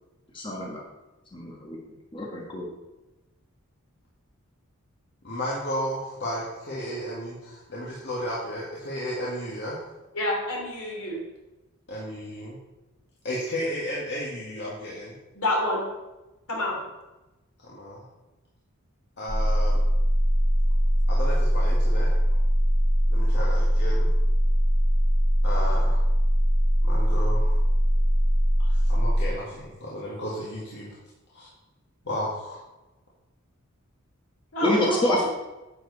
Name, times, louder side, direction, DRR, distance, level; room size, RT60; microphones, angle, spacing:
voice 1, 0.3-0.8 1.3-1.8 2.1-2.7 34.6-35.2, left 1 dB, 25° left, -2 dB, 1.6 m, -26 dB
voice 2, 5.2-9.8 11.9-12.6 13.2-15.1 16.7-16.8 17.6-18.0 19.2-19.8 21.1-22.1 23.1-24.1 25.4-26.0 26.8-27.6 28.6-30.9 31.3-31.5 32.0-32.6, equal, 55° left, -6 dB, 1.9 m, -33 dB
voice 3, 10.1-11.2 15.3-15.8 16.5-16.8 34.5-35.3, left 1 dB, 75° left, -2 dB, 3.3 m, -27 dB
sound 1, 19.3-29.3, equal, 50° right, 3.4 m, -21 dB
9.9 x 7.8 x 4.1 m, 1.0 s
head